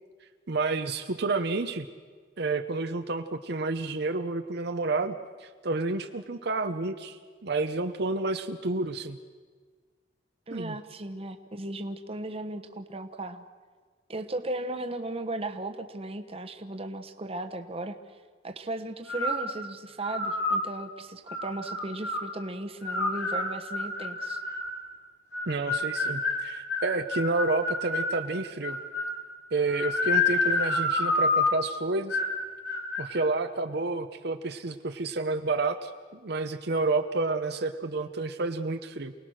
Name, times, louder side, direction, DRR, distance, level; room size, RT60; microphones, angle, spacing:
voice 1, 0.5-1.9 2.4-5.1 5.4-9.2 10.5-10.8 25.5-28.8 29.5-32.2 33.0-39.1, right 3 dB, 60° right, 7 dB, 0.8 m, -30 dB
voice 2, 10.5-13.4 14.1-18.0 18.4-24.4, right 2 dB, 30° right, 6 dB, 1.1 m, -36 dB
sound 1, 19.1-19.5 20.0-20.7 21.3-22.3 22.8-24.7 25.3-28.1 28.6-29.2 29.7-31.6 32.1-32.4 32.6-33.1, left 2 dB, 70° left, 4.0 m, -28 dB
28.5 x 19.0 x 6.4 m, 1.5 s
head